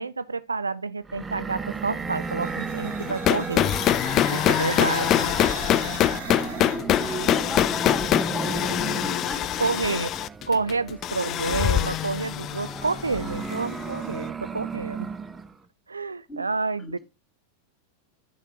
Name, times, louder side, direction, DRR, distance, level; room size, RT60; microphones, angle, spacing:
voice 1, 0.0-3.7 4.3-5.3 9.6-10.1 10.5-15.1 15.9-17.0, right 4 dB, 80° right, 0.5 m, -29 dB
sound 1, 1.0-15.6, right 4 dB, 15° right, 0.6 m, -35 dB
sound 2, 2.0-7.3, right 2 dB, 60° right, 5.3 m, -37 dB
sound 3, 3.1-13.9, left 11 dB, 35° left, 0.4 m, -24 dB
voice 2, 6.4-9.6 16.3-16.5, left 2 dB, 10° left, 3.3 m, -35 dB
11.0 x 6.6 x 2.9 m
figure-of-eight pair, 90°, 0 cm